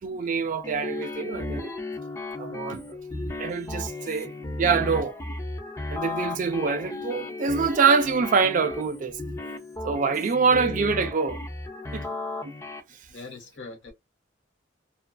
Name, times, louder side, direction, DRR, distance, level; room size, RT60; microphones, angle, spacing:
voice 1, 0.0-1.7 2.4-3.0 3.4-5.1 5.9-9.1 9.8-11.4 11.9-12.0, right 5 dB, 45° right, 0.4 m, -25 dB
sound 1, 0.6-12.8, left 2 dB, 15° left, 0.4 m, -35 dB
voice 2, 13.1-13.9, left 3 dB, 85° left, 1.0 m, -42 dB
2.3 x 2.3 x 2.3 m
head